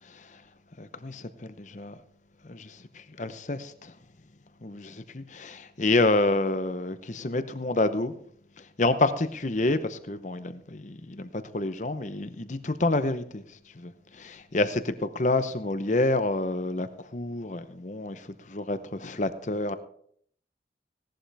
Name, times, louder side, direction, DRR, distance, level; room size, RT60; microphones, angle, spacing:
voice 1, 0.8-1.9 2.5-3.9 4.6-8.1 8.8-13.4 13.8-19.7, left 2 dB, 40° left, 0.8 m, -28 dB
17.0 x 11.5 x 3.4 m
head